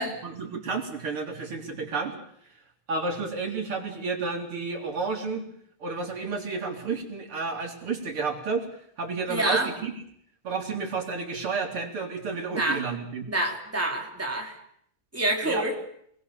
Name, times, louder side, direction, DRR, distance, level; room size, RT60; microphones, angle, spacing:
voice 1, 0.0-2.1 2.9-5.4 5.8-8.7 9.0-10.0 10.4-13.3 15.4-15.7, right 4 dB, 85° right, 2 dB, 4.6 m, -31 dB
voice 2, 9.3-9.7 12.5-12.8 13.3-14.6 15.1-15.8, right 1 dB, 5° right, 0 dB, 3.7 m, -27 dB
29.0 x 21.0 x 7.1 m, 0.69 s
omnidirectional pair, 2.3 m